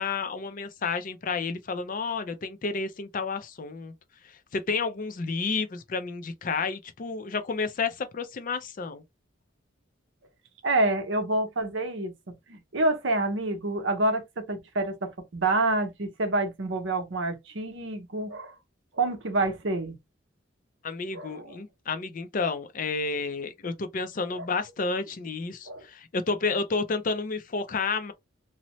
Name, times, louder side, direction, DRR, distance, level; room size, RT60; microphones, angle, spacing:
voice 1, 0.0-3.9 4.2-9.0 20.8-28.1, left 4 dB, 40° left, 0.4 m, -31 dB
voice 2, 10.6-12.1 12.5-18.5 19.0-19.9 21.1-21.6 24.4-24.5 25.7-25.8, right 2 dB, 65° right, 0.8 m, -27 dB
2.7 x 2.0 x 3.0 m
head